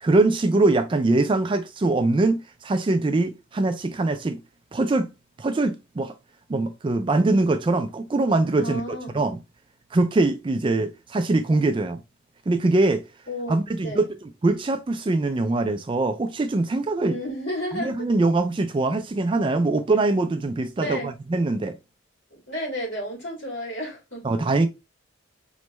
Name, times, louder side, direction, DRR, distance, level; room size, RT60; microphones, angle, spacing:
voice 1, 0.0-4.4 4.7-5.1 5.4-6.1 6.5-9.4 9.9-12.0 12.5-13.0 13.5-17.2 17.7-21.8 24.2-24.7, right 2 dB, 25° right, 0.3 m, -23 dB
voice 2, 8.6-9.2 13.3-14.1 17.0-17.9 20.8-21.1 22.3-24.4, equal, 55° left, 2.6 m, -32 dB
4.3 x 3.1 x 3.0 m
head